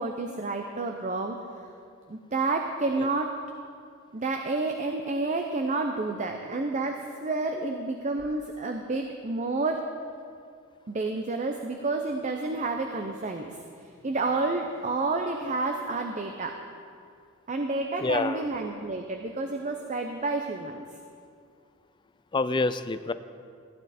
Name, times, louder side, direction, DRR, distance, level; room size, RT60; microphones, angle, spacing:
voice 1, 0.0-1.4 2.1-3.4 4.1-9.9 10.9-13.6 14.0-16.6 17.5-20.8, right 3 dB, 35° right, 4 dB, 0.6 m, -30 dB
voice 2, 18.0-18.5 22.3-23.1, left 3 dB, 20° left, 13 dB, 0.4 m, -27 dB
15.0 x 10.5 x 4.2 m, 2.3 s
head